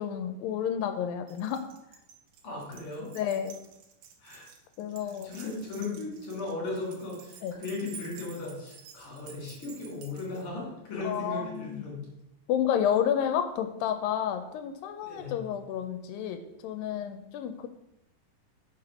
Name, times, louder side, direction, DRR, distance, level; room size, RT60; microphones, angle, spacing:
voice 1, 0.0-1.6 3.1-3.5 4.8-5.3 7.4-7.6 11.0-11.9 12.5-17.7, left 9 dB, 90° left, 8 dB, 2.3 m, -30 dB
Keys jangling, 1.3-10.5, right 7 dB, 75° right, 2.4 m, -51 dB
voice 2, 2.4-3.1 4.2-4.5 5.2-12.0 15.0-15.4, left 3 dB, 40° left, -3 dB, 3.7 m, -37 dB
6.1 x 5.0 x 5.9 m, 0.88 s
omnidirectional pair, 4.0 m